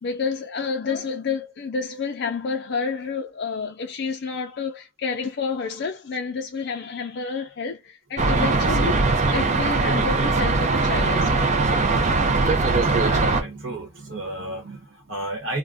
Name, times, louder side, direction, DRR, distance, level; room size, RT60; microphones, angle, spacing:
voice 1, 0.0-9.0 9.3-11.6 12.2-12.3, left 5 dB, 50° left, 0.4 m, -29 dB
sound 1, 8.2-13.4, right 3 dB, 35° right, 0.4 m, -20 dB
voice 2, 11.8-15.6, right 2 dB, 65° right, 1.0 m, -33 dB
2.5 x 2.1 x 3.3 m
head